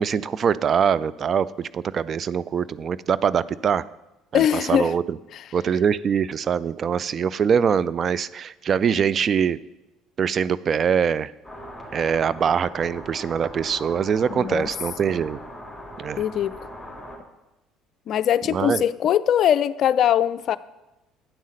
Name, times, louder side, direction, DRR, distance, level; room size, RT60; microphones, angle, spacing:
voice 1, 0.0-3.8 4.3-5.2 5.5-9.6 10.2-11.3 11.9-15.4 16.0-16.2 18.5-18.9, right 7 dB, 45° right, 18 dB, 0.3 m, -23 dB
voice 2, 4.3-4.9 5.3-5.4 14.3-14.7 16.2-16.6 18.1-20.6, left 10 dB, 55° left, 16 dB, 0.3 m, -21 dB
sound 1, 11.4-17.2, equal, 5° right, 2.8 m, -40 dB
9.0 x 5.5 x 6.5 m, 0.97 s
hypercardioid pair, 60°, 0 cm